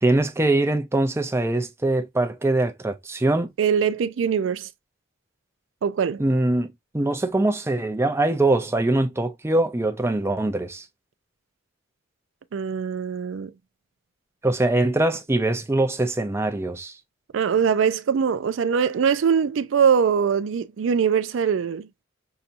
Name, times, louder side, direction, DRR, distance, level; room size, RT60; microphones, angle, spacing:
voice 1, 0.0-3.5 6.2-10.8 14.4-17.0, right 2 dB, 15° right, 0.5 m, -23 dB
voice 2, 3.6-4.7 5.8-6.2 12.5-13.5 17.3-22.0, right 7 dB, 70° right, 0.4 m, -22 dB
5.7 x 2.7 x 2.5 m
head